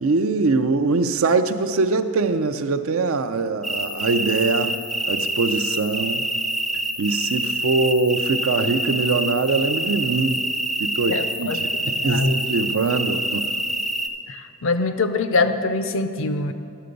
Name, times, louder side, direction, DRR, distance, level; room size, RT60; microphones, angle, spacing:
voice 1, 0.0-4.8 5.1-6.3 7.0-10.4 10.8-13.5, right 3 dB, 75° right, 9 dB, 0.5 m, -22 dB
sound 1, 3.6-14.1, right 1 dB, ahead, 0.3 m, -26 dB
voice 2, 11.1-12.4 14.3-16.5, left 3 dB, 65° left, 9 dB, 0.5 m, -24 dB
11.0 x 6.8 x 5.2 m, 2.4 s
head